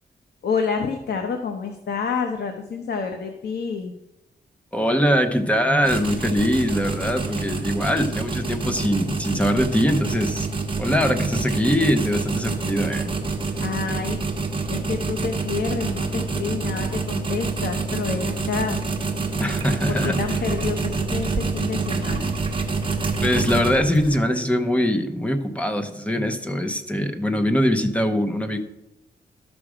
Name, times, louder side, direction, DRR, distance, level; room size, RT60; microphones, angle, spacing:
voice 1, 0.4-3.9 13.6-14.2 14.7-18.8 19.9-22.3, left 5 dB, 65° left, 5 dB, 0.9 m, -28 dB
voice 2, 4.7-10.5 10.8-13.1 19.4-20.2 23.2-28.6, equal, 5° left, 7 dB, 0.7 m, -22 dB
sound 1, 5.8-24.2, right 3 dB, 30° right, 1.0 m, -27 dB
12.0 x 6.2 x 4.9 m, 0.90 s
wide cardioid pair, 175°, 18 cm